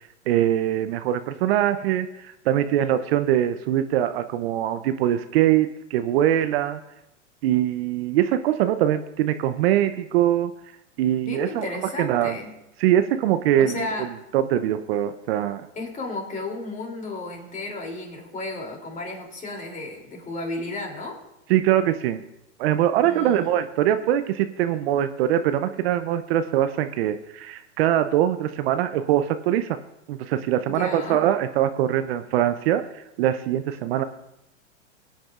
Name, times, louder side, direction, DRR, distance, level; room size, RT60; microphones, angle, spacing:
voice 1, 0.3-6.8 7.4-10.5 11.0-11.7 12.0-12.4 12.8-14.1 14.3-15.7 21.5-22.2 22.6-29.7 30.1-34.0, right 11 dB, 55° right, 10 dB, 0.7 m, -22 dB
voice 2, 11.2-12.5 13.6-14.1 15.7-21.2 23.0-23.5 30.7-31.2, left 2 dB, 20° left, 2 dB, 3.0 m, -33 dB
21.5 x 8.9 x 2.5 m, 0.89 s
hypercardioid pair, 110°, 37 cm